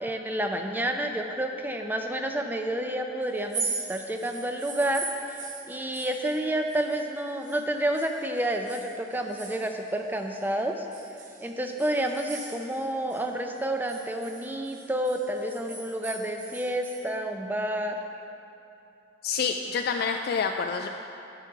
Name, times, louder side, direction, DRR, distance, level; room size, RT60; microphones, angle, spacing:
voice 1, 0.0-5.4 5.7-10.8 11.4-18.0, right 1 dB, 10° right, 4 dB, 0.5 m, -29 dB
sound 1, 3.4-7.6 7.9-10.5 10.9-13.3 13.6-17.1, right 4 dB, 40° right, 1.0 m, -40 dB
voice 2, 19.2-20.9, left 5 dB, 50° left, 4 dB, 0.3 m, -27 dB
10.0 x 6.1 x 4.6 m, 2.8 s
head